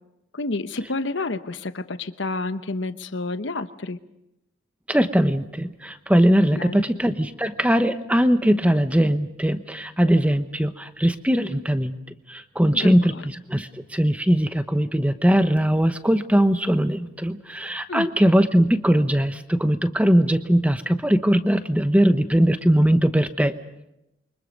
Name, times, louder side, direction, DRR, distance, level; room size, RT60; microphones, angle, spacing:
voice 1, 0.3-4.0 6.5-6.9 12.7-13.2 17.9-18.1, left 2 dB, 60° left, 11 dB, 1.0 m, -29 dB
voice 2, 4.9-11.9 12.3-23.5, equal, 5° right, 9 dB, 1.0 m, -20 dB
28.5 x 24.0 x 5.4 m, 0.88 s
head